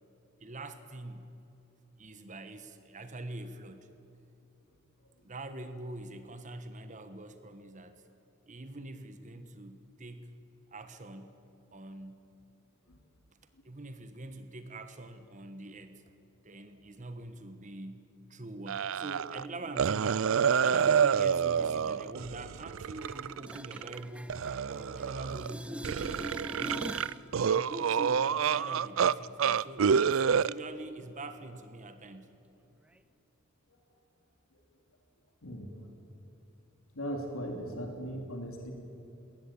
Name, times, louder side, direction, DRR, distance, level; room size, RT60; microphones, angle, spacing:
voice 1, 0.4-1.3 2.0-3.9 5.2-8.0 8.5-10.3 10.7-11.4 11.7-12.3 13.6-16.0 16.4-24.3 24.7-27.0 27.4-32.3, right 2 dB, 35° right, 9 dB, 1.2 m, -44 dB
sound 1, 18.7-19.5 19.8-24.0 24.3-25.5 25.8-29.1 29.4-30.5, right 7 dB, 65° right, 0.4 m, -28 dB
sound 2, 23.0-25.0 25.3-27.2 33.0-33.1, equal, 5° right, 0.7 m, -42 dB
voice 2, 36.9-38.7, equal, 80° left, 2 dB, 2.8 m, -38 dB
21.0 x 18.0 x 8.7 m, 2.8 s
head